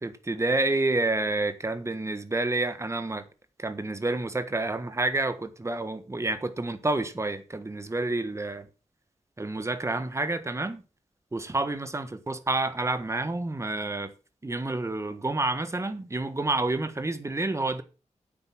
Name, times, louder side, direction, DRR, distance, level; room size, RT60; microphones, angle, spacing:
voice 1, 0.0-3.2 3.6-8.7 9.4-10.8 11.3-14.1 14.4-17.8, right 2 dB, 25° right, 1.4 m, -29 dB
9.2 x 7.7 x 6.0 m
wide cardioid pair, 110°, 13 cm